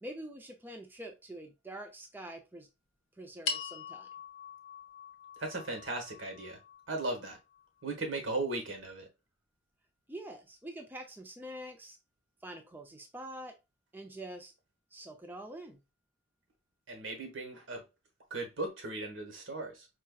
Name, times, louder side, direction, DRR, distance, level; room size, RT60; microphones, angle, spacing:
voice 1, 0.0-2.7 3.2-4.1 10.1-12.0 12.4-13.6 13.9-14.5 14.9-15.8, right 1 dB, 10° right, 0.5 m, -45 dB
sound 1, 3.5-7.9, left 5 dB, 75° left, 0.7 m, -42 dB
voice 2, 5.4-6.6 6.9-7.4 7.8-9.1 16.9-17.8 18.3-19.9, right 2 dB, 85° right, 1.4 m, -37 dB
4.5 x 2.9 x 2.3 m
head